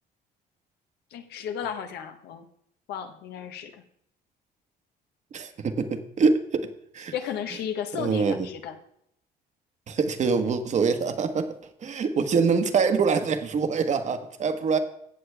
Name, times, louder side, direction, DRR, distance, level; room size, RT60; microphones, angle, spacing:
voice 1, 1.1-2.5 2.9-3.7 7.1-8.8, left 8 dB, 75° left, 1.3 m, -34 dB
voice 2, 5.3-6.7 6.9-7.1 7.9-8.5 9.9-11.5 11.8-14.8, right 5 dB, 45° right, 1.3 m, -24 dB
16.5 x 6.9 x 3.5 m
cardioid pair, 110°, 17 cm